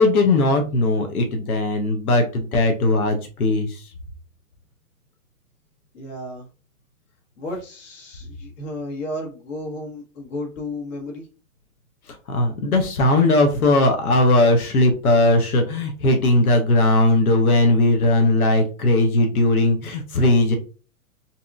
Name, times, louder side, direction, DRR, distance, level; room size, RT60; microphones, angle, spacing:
voice 1, 0.0-3.8 12.3-20.6, left 2 dB, 90° left, 5 dB, 0.7 m, -18 dB
voice 2, 5.9-6.5 7.4-11.3, left 1 dB, 60° left, 0 dB, 1.2 m, -33 dB
2.7 x 2.6 x 2.2 m, 0.35 s
hypercardioid pair, 115°, 43 cm